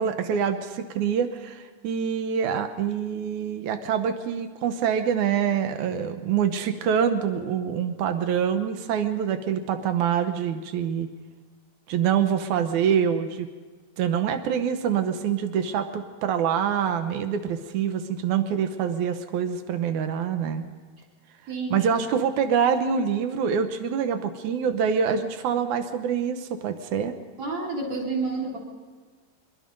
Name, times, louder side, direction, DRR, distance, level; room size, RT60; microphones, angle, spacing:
voice 1, 0.0-11.1 11.9-13.5 14.0-20.6 21.7-27.1, right 7 dB, 85° right, 8 dB, 1.7 m, -25 dB
voice 2, 21.5-21.9 27.4-28.6, right 3 dB, 35° right, -1 dB, 4.0 m, -29 dB
23.5 x 22.5 x 5.3 m, 1.5 s
omnidirectional pair, 4.9 m